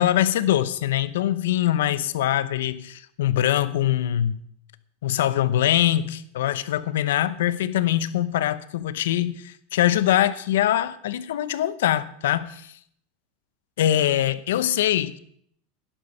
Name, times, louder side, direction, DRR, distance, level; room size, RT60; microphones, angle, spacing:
voice 1, 0.0-4.4 5.0-12.7 13.8-15.2, left 12 dB, 90° left, 0.9 m, -23 dB
12.0 x 10.0 x 5.6 m
supercardioid pair, 160°, 0 cm